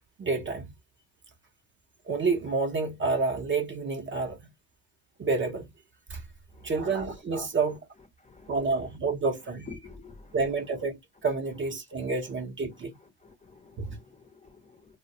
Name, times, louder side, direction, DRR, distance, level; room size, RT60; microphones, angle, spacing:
voice 1, 0.2-0.7 2.1-4.4 5.2-5.7 6.1-6.2 6.6-7.8 8.5-9.7 10.3-11.0 11.2-12.9 13.8-13.9, right 4 dB, 30° right, 0.6 m, -29 dB
voice 2, 8.2-8.5 9.7-10.4 13.2-14.9, left 4 dB, 15° left, 0.6 m, -49 dB
2.2 x 2.1 x 2.7 m
supercardioid pair, 85°, 43 cm